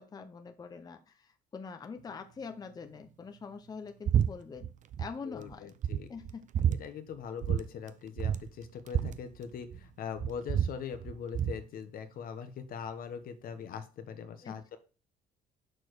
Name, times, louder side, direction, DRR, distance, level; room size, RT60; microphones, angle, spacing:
voice 1, 0.0-4.7 5.0-5.7 6.1-6.6 14.4-14.8, left 5 dB, 25° left, 0.6 m, -44 dB
sound 1, 4.1-4.3 4.5-5.1 5.5-5.6 5.8-6.8 7.4-7.6 7.9-8.0 8.2-9.8 10.2-11.6, right 9 dB, 45° right, 0.6 m, -29 dB
voice 2, 5.3-6.1 6.7-14.8, left 7 dB, 60° left, 1.0 m, -41 dB
6.2 x 4.6 x 4.7 m
cardioid pair, 110°, 17 cm